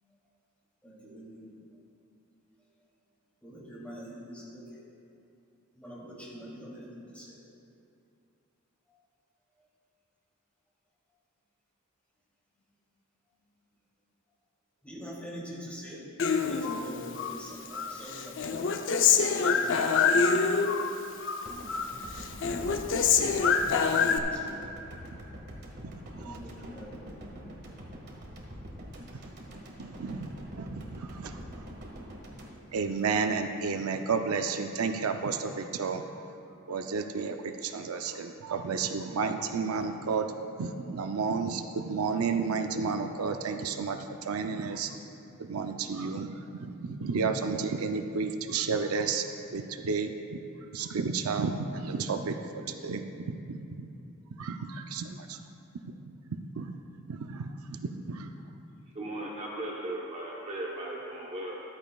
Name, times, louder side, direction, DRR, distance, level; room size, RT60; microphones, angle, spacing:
voice 1, 0.8-1.5 3.4-4.8 5.7-7.4 9.6-9.7 14.8-18.7 19.3-20.5 23.7-25.0 26.2-27.2, equal, 5° left, -7 dB, 2.8 m, -45 dB
Human voice, 16.2-17.4 17.7-20.9 21.2-21.9 22.2-24.2, left 5 dB, 60° left, 0.6 m, -25 dB
sound 1, 21.5-33.7, equal, 50° right, 1.6 m, -45 dB
voice 2, 29.8-31.4 32.7-36.0 36.7-40.3 40.6-44.9 45.4-49.3 49.5-50.4 50.7-53.9 54.4-55.4 56.0-56.1 56.5-56.8 57.1-58.3, right 5 dB, 85° right, 6 dB, 0.5 m, -32 dB
voice 3, 58.9-61.6, right 1 dB, 30° right, -3 dB, 1.0 m, -37 dB
14.0 x 12.0 x 2.3 m, 2.6 s
head